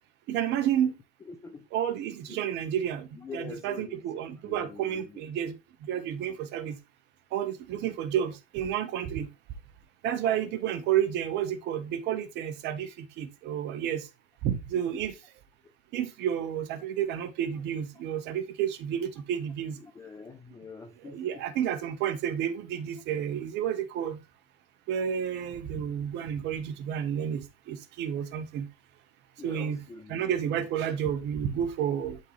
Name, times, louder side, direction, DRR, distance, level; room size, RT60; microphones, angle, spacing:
voice 1, 0.3-0.9 1.7-3.1 3.3-6.8 7.3-9.3 10.0-14.0 14.4-15.1 15.9-19.8 21.0-24.2 24.9-28.7 29.4-29.8 30.1-32.2, right 9 dB, 35° right, 1.1 m, -30 dB
voice 2, 1.2-1.7 2.3-2.4 3.1-4.0 4.4-5.3 19.7-21.5 29.4-30.7, left 4 dB, 10° left, 0.5 m, -45 dB
11.0 x 3.9 x 3.2 m
hypercardioid pair, 130°, 31 cm